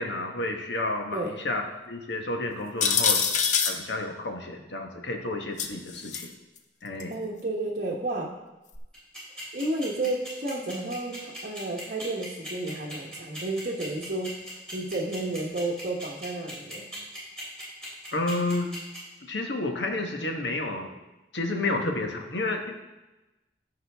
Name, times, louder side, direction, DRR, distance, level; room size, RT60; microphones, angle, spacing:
voice 1, 0.0-3.2 3.6-6.3 6.8-7.2 18.1-18.8 19.2-20.9 21.3-22.7, left 2 dB, 80° left, 3 dB, 1.2 m, -30 dB
sound 1, 2.8-3.8 5.6-6.3 7.0-7.1 8.7-8.8, left 6 dB, 45° left, 0.6 m, -24 dB
voice 2, 7.1-8.3 9.3-16.9 21.7-21.9, right 2 dB, 50° right, -4 dB, 1.1 m, -32 dB
sound 2, 8.9-19.0, right 1 dB, 5° left, 3.3 m, -40 dB
14.0 x 5.1 x 3.5 m, 1.0 s
head